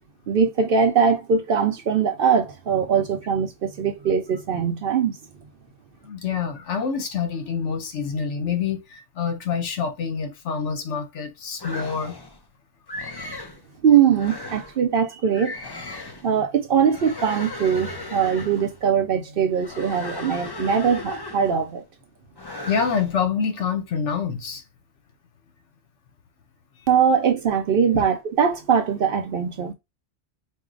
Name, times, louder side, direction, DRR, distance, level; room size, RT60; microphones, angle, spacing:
voice 1, 0.3-5.2 13.8-15.6 16.2-21.8 26.9-29.7, right 7 dB, 60° right, 0.7 m, -21 dB
voice 2, 6.0-12.2 22.7-24.6 27.9-28.0, left 6 dB, 80° left, 1.1 m, -26 dB
sound 1, 11.6-12.4 12.9-13.6 14.1-14.8 15.3-16.3 16.8-18.8 19.5-21.7 22.4-23.2, left 2 dB, 35° left, 0.4 m, -36 dB
4.5 x 2.1 x 3.7 m
omnidirectional pair, 1.2 m